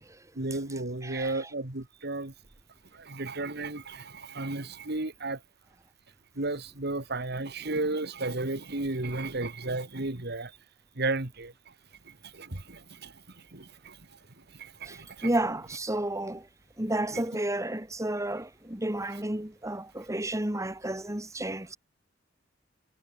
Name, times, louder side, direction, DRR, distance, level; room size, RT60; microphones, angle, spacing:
voice 1, 0.4-2.3 2.9-5.4 6.4-10.5 11.0-11.5 12.2-13.1 13.5-14.0 14.5-15.3, right 2 dB, 60° right, 2.3 m, -33 dB
voice 2, 1.0-1.5 14.9-16.5 16.8-21.8, right 1 dB, 15° right, 2.4 m, -32 dB
head